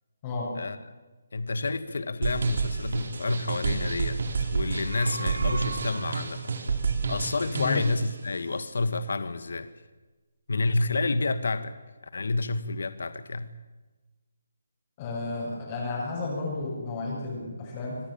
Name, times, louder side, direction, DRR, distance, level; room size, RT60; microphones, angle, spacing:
voice 1, 1.3-6.6 7.1-9.7 10.5-11.7 12.0-13.6, left 3 dB, 70° left, 1.5 m, -29 dB
sound 1, 2.2-8.0, right 5 dB, 55° right, 4.4 m, -30 dB
sound 2, 4.6-6.6, right 4 dB, 80° right, 1.5 m, -38 dB
voice 2, 15.0-18.0, left 3 dB, 20° left, 6.7 m, -32 dB
26.0 x 17.5 x 8.8 m
hypercardioid pair, 175°, 0 cm